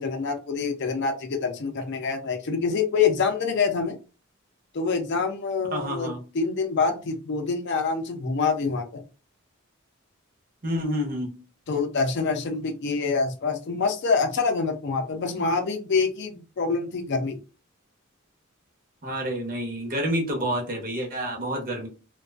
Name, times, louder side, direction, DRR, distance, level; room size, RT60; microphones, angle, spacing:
voice 1, 0.0-4.0 4.7-9.0 11.7-17.4, left 4 dB, 55° left, 6 dB, 0.4 m, -26 dB
voice 2, 5.7-6.2 10.6-11.3 19.0-21.9, equal, 40° right, 1 dB, 0.8 m, -28 dB
2.4 x 2.2 x 2.3 m, 0.32 s
head